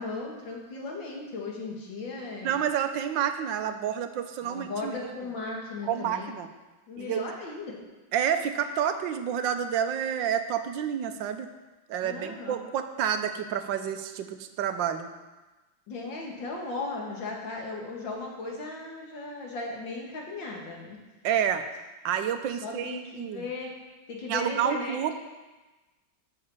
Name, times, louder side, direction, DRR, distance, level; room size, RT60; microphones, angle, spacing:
voice 1, 0.0-2.6 4.4-6.3 6.9-7.7 12.0-12.6 15.9-21.0 22.6-23.7 24.1-25.1, left 3 dB, 80° left, -1 dB, 2.7 m, -36 dB
voice 2, 2.4-5.0 5.8-6.5 7.0-7.3 8.1-11.5 11.9-15.1 21.2-21.6 22.0-23.4 24.3-25.1, right 9 dB, 80° right, 8 dB, 1.5 m, -29 dB
10.0 x 6.5 x 7.2 m, 1.1 s
omnidirectional pair, 2.0 m